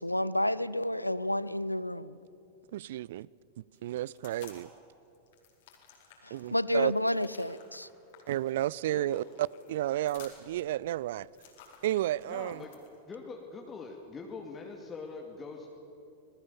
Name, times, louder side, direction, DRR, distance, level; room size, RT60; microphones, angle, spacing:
voice 1, 0.0-2.2 6.2-7.9, left 1 dB, 85° left, 0.6 m, -30 dB
voice 2, 2.7-3.3 3.6-4.7 6.3-6.9 8.3-11.3 11.8-12.7, right 13 dB, 55° right, 0.4 m, -32 dB
sound 1, 3.7-4.8 5.1-13.0, left 7 dB, 55° left, 4.5 m, -56 dB
voice 3, 8.9-9.2 12.3-12.7 13.0-15.7, left 4 dB, 20° left, 2.5 m, -43 dB
27.0 x 20.5 x 7.1 m
figure-of-eight pair, 90°, 0 cm